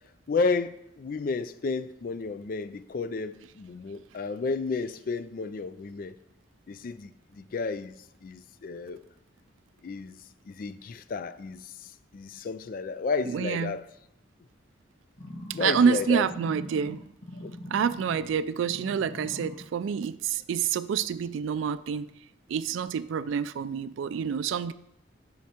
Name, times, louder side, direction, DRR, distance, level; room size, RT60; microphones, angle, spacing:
voice 1, 0.3-6.1 6.7-7.9 8.2-9.0 9.8-10.2 10.5-11.6 12.1-13.9 15.5-16.2 17.4-17.5, left 4 dB, 45° left, 0.3 m, -32 dB
voice 2, 13.3-13.8 15.5-17.0 17.7-22.1 22.5-24.7, right 7 dB, 80° right, 0.3 m, -27 dB
sound 1, 15.2-18.3 18.6-19.6 20.2-20.3, equal, 65° left, 1.5 m, -42 dB
10.5 x 6.4 x 2.9 m
head